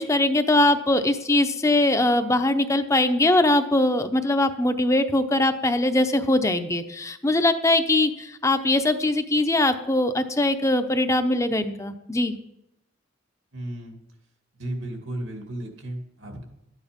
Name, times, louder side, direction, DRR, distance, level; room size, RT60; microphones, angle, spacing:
voice 1, 0.0-12.3, left 2 dB, 15° left, 9 dB, 0.7 m, -21 dB
voice 2, 13.5-14.0 14.5-16.4, right 1 dB, 85° right, 3 dB, 2.4 m, -34 dB
12.5 x 9.4 x 5.2 m, 0.82 s
head